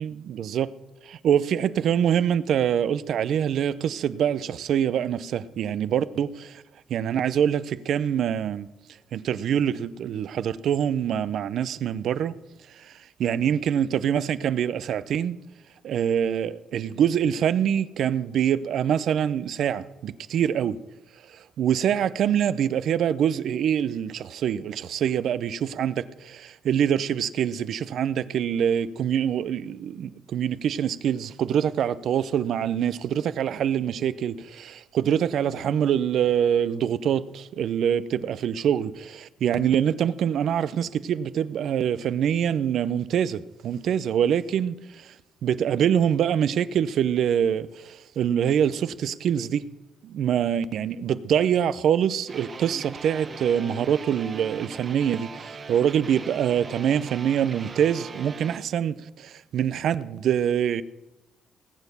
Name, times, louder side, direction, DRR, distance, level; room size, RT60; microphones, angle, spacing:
voice 1, 0.0-0.7 1.0-6.6 6.9-8.7 9.1-12.3 12.7-15.4 15.8-20.8 21.3-45.2 45.4-49.7 50.0-60.8, right 9 dB, 70° right, 0.6 m, -25 dB
sound 1, 52.3-58.6, right 4 dB, 40° right, 1.0 m, -40 dB
18.5 x 7.2 x 6.8 m
cardioid pair, 90°, 0 cm